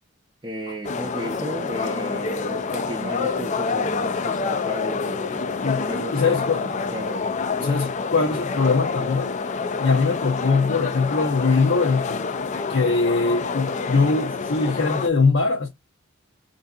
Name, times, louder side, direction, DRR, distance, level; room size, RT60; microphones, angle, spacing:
voice 1, 0.4-7.8, right 1 dB, 20° right, 0.5 m, -35 dB
sound 1, 0.8-15.1, left 4 dB, 35° left, 0.3 m, -27 dB
voice 2, 5.6-6.7 7.6-9.3 9.8-12.2 12.5-15.7, left 4 dB, 60° left, 0.7 m, -22 dB
4.4 x 2.6 x 2.3 m
head